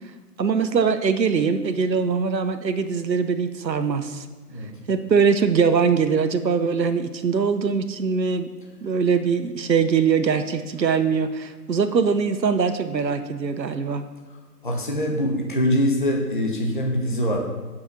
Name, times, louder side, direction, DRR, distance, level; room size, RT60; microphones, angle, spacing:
voice 1, 0.4-4.3 4.9-8.5 8.8-14.0, right 6 dB, 85° right, 9 dB, 1.0 m, -22 dB
voice 2, 14.6-17.4, equal, 30° left, 0 dB, 1.0 m, -23 dB
9.0 x 5.8 x 5.9 m, 1.3 s
figure-of-eight pair, 170°, 49 cm